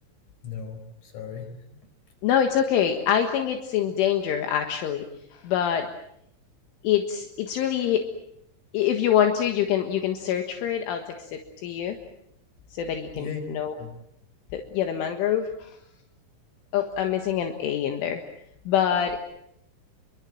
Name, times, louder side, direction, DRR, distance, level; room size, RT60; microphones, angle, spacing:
voice 1, 0.4-1.5 13.1-13.4 13.8-13.9, left 7 dB, 40° left, 7 dB, 5.9 m, -36 dB
voice 2, 2.2-5.1 5.4-5.9 6.8-8.1 8.7-11.0 11.3-12.0 12.7-13.7 14.5-15.7 16.7-18.2 18.7-19.2, left 9 dB, 75° left, 5 dB, 3.9 m, -25 dB
28.0 x 24.0 x 7.7 m, 0.75 s
omnidirectional pair, 6.0 m